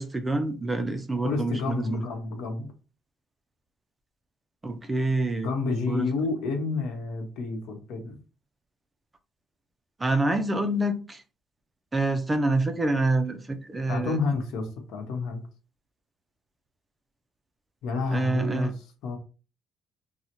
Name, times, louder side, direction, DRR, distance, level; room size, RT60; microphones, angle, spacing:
voice 1, 0.0-2.0 4.6-5.5 5.9-6.1 10.0-11.2 11.9-14.2 18.1-18.7, right 2 dB, 15° right, 0.3 m, -26 dB
voice 2, 1.2-2.7 5.4-8.2 13.9-15.4 17.8-19.2, left 4 dB, 80° left, 0.8 m, -30 dB
3.8 x 2.0 x 2.9 m
cardioid pair, 165°, 0 cm